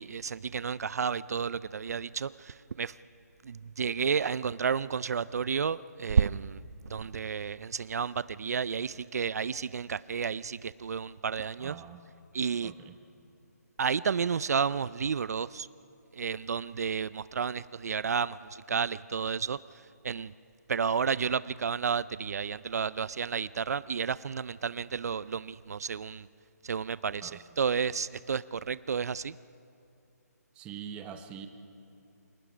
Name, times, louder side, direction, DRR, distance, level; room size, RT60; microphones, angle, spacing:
voice 1, 0.0-2.9 3.4-11.8 12.3-12.7 13.8-15.7 16.1-19.6 20.0-20.3 20.7-26.3 26.6-27.3 27.6-29.4, right 6 dB, 65° right, 18 dB, 0.4 m, -31 dB
voice 2, 11.6-12.0 12.6-12.9 27.2-27.4 30.5-31.5, right 8 dB, 10° right, 8 dB, 0.8 m, -44 dB
27.0 x 19.0 x 5.0 m, 2.7 s
hypercardioid pair, 160°, 9 cm